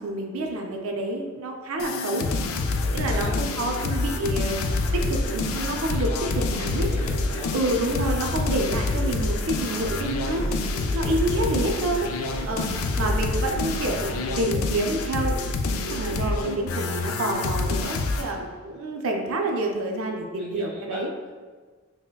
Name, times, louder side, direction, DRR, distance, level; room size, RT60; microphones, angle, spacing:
voice 1, 0.0-2.3 2.9-4.6 4.9-6.9 7.5-10.5 10.9-12.1 12.4-12.7 13.0-15.4 15.9-21.1, right 2 dB, 90° right, 1 dB, 0.4 m, -28 dB
sound 1, 1.8-18.3, left 3 dB, 90° left, 0.3 m, -27 dB
voice 2, 2.8-3.4 6.6-7.5 12.4-12.8 20.4-21.3, left 2 dB, ahead, -11 dB, 1.3 m, -40 dB
sound 2, 4.0-14.4, equal, 40° left, 0.8 m, -35 dB
5.5 x 2.1 x 2.2 m, 1.4 s
head